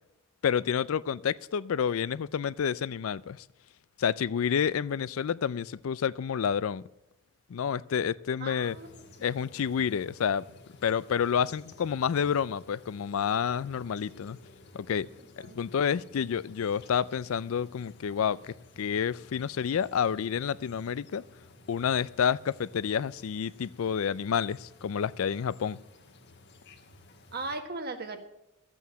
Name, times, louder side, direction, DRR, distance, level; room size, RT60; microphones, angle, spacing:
voice 1, 0.4-3.4 4.0-6.8 7.5-8.8 9.2-10.4 10.8-14.4 14.7-15.1 15.5-21.2 21.7-25.8, left 7 dB, 70° left, 0.4 m, -29 dB
voice 2, 8.4-9.0 15.4-15.6 27.3-28.2, right 3 dB, 45° right, 1.4 m, -37 dB
sound 1, 8.6-27.6, left 2 dB, 50° left, 1.6 m, -55 dB
13.0 x 8.4 x 7.5 m
head